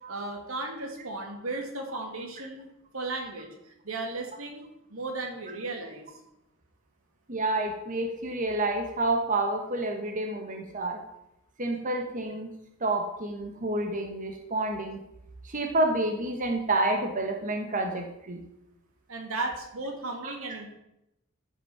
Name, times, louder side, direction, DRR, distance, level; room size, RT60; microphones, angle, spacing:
voice 1, 0.1-2.7 2.9-4.6 4.9-6.2 19.1-20.7, right 2 dB, 90° right, 2 dB, 2.3 m, -35 dB
voice 2, 7.3-11.0 11.6-12.5 12.8-15.0 15.4-18.4 20.2-20.3, right 2 dB, 40° right, 3 dB, 1.2 m, -29 dB
13.5 x 6.1 x 5.7 m, 0.86 s
head